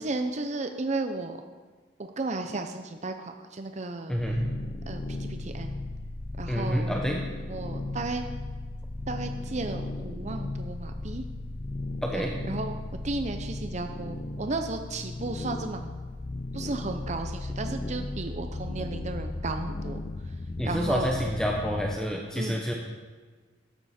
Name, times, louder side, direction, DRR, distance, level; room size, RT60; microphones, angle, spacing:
voice 1, 0.0-1.4 2.0-4.2 4.9-5.8 6.4-7.0 7.5-8.2 9.1-11.3 12.1-12.8 13.0-15.9 16.5-20.0 20.6-21.2 22.4-22.7, right 3 dB, 40° right, 6 dB, 0.7 m, -34 dB
sound 1, 4.1-22.0, left 2 dB, 35° left, 0.5 m, -36 dB
voice 2, 6.5-7.2 12.0-12.4 20.6-22.7, equal, 5° left, 0 dB, 0.9 m, -28 dB
13.5 x 12.0 x 4.3 m, 1.4 s
head